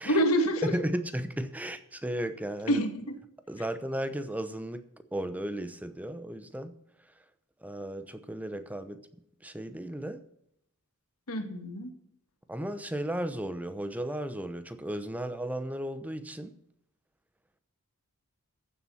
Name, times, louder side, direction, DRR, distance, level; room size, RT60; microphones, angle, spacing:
voice 1, 0.1-0.7 2.7-3.1 11.3-11.9, equal, 75° left, 2.0 m, -27 dB
voice 2, 0.6-2.8 3.5-4.9 5.1-6.7 7.6-9.0 9.4-10.2 12.5-16.5, right 1 dB, 5° right, 0.8 m, -34 dB
15.0 x 7.4 x 5.7 m
head